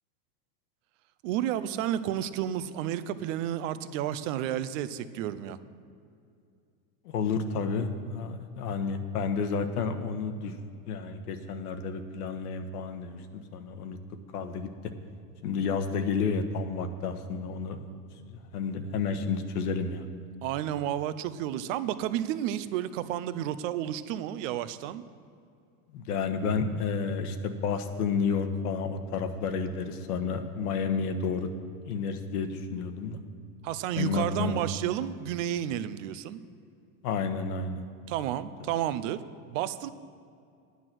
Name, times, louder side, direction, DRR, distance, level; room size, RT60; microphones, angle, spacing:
voice 1, 1.2-5.6 20.4-25.0 33.6-36.4 38.1-39.2 39.5-39.9, right 11 dB, 60° right, 14 dB, 0.7 m, -31 dB
voice 2, 7.0-10.5 10.9-13.2 13.5-14.0 14.3-14.7 15.4-17.9 18.3-20.1 25.9-31.5 31.8-33.2 34.0-34.6 37.0-37.9, left 5 dB, 90° left, 7 dB, 1.3 m, -31 dB
11.5 x 9.6 x 6.1 m, 2.5 s
supercardioid pair, 150°, 44 cm